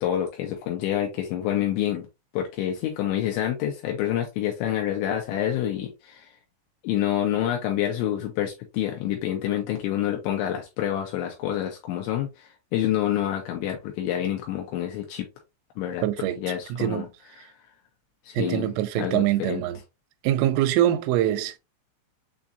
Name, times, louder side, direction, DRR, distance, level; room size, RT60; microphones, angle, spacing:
voice 1, 0.0-2.1 2.3-6.3 6.8-15.3 15.8-16.1 16.4-17.1 17.4-17.5 18.3-19.6, left 11 dB, 80° left, 2.9 m, -27 dB
voice 2, 16.0-16.4 16.7-17.0 18.3-19.8 20.2-21.6, right 12 dB, 85° right, 3.1 m, -24 dB
7.2 x 2.5 x 2.6 m
omnidirectional pair, 5.6 m